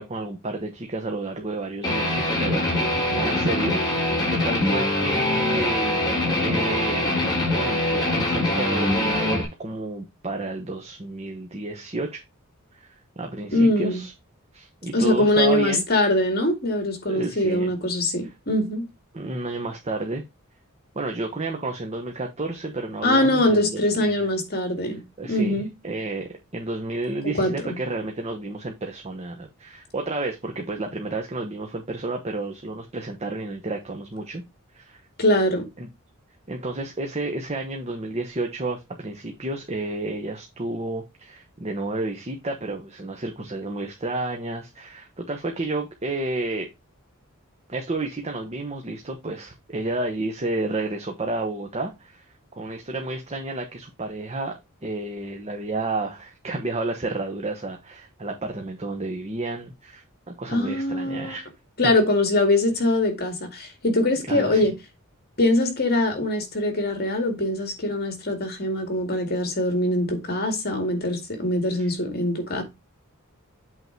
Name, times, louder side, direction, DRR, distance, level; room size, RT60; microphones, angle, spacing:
voice 1, 0.0-7.2 7.5-12.2 12.7-14.1 14.5-15.8 17.1-17.7 19.1-20.2 20.9-24.3 24.8-34.4 34.7-35.0 35.8-35.9 36.5-46.7 47.7-52.2 52.5-61.5 64.3-64.7 71.8-71.9, right 2 dB, 30° right, 1.1 m, -31 dB
Guitar, 1.8-9.4, left 1 dB, 20° left, 3.6 m, -23 dB
voice 2, 13.5-14.0 14.9-18.8 23.0-25.7 27.2-27.8 35.2-35.7 60.5-61.4 61.8-64.7 65.4-72.6, left 1 dB, 50° left, 2.2 m, -23 dB
8.1 x 3.8 x 4.6 m
head